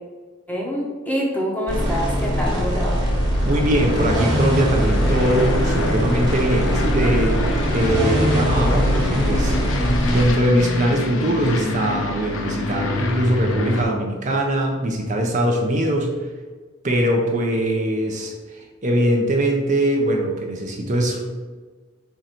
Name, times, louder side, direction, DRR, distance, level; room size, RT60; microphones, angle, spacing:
voice 1, 0.5-3.0, equal, 10° left, -2 dB, 0.7 m, -25 dB
sound 1, 1.7-10.3, equal, 20° right, 1.4 m, -22 dB
Aircraft, 2.9-13.9, left 2 dB, 75° left, 0.6 m, -26 dB
voice 2, 3.4-7.4 7.7-9.6 10.1-16.1 16.8-21.3, right 1 dB, 40° right, 0 dB, 0.5 m, -21 dB
4.5 x 2.6 x 4.3 m, 1.4 s
head